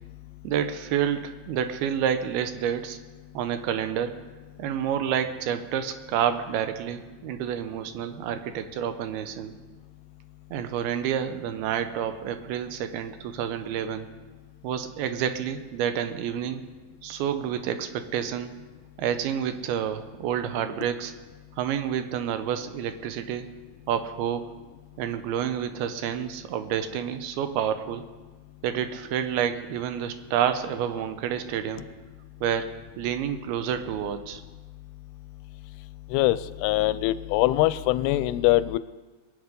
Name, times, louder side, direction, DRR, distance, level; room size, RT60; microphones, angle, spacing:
voice 1, 0.4-3.0 3.3-4.2 4.6-9.5 10.5-14.1 14.6-16.6 17.0-18.5 19.0-21.1 21.6-23.5 23.9-24.5 25.0-28.1 28.6-31.9 32.4-34.4, right 9 dB, 85° right, 9 dB, 2.8 m, -29 dB
voice 2, 36.1-38.8, left 16 dB, 90° left, 16 dB, 2.5 m, -23 dB
22.0 x 8.3 x 5.3 m, 1.3 s
omnidirectional pair, 4.4 m